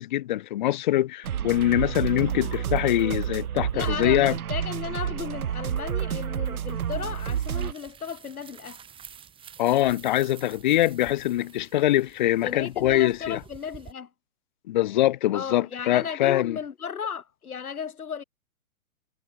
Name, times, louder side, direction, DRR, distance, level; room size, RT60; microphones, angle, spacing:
voice 1, 0.0-4.4 9.6-13.4 14.7-16.6, left 14 dB, 35° left, 0.5 m, -23 dB
sound 1, 1.2-7.7, right 9 dB, 85° right, 1.1 m, -29 dB
voice 2, 3.7-8.8 12.4-14.1 15.3-18.2, left 7 dB, 85° left, 3.5 m, -35 dB
sound 2, 6.5-13.9, right 8 dB, 10° right, 1.8 m, -49 dB
hypercardioid pair, 140°, 43 cm